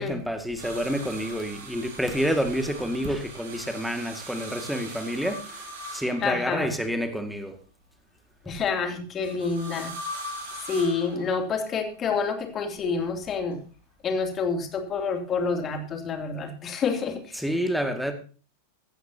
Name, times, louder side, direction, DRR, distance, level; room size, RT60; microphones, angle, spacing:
voice 1, 0.0-5.7 5.9-7.6 17.4-18.1, equal, ahead, 7 dB, 2.0 m, -28 dB
sound 1, 0.6-6.8 9.2-11.7 12.8-13.5 15.0-15.1, right 1 dB, 55° right, 6.3 m, -41 dB
voice 2, 6.2-6.7 8.4-9.9 10.7-13.6 14.0-17.4, left 5 dB, 25° left, 5 dB, 2.7 m, -28 dB
16.5 x 14.0 x 2.8 m, 0.37 s
figure-of-eight pair, 90°, 0 cm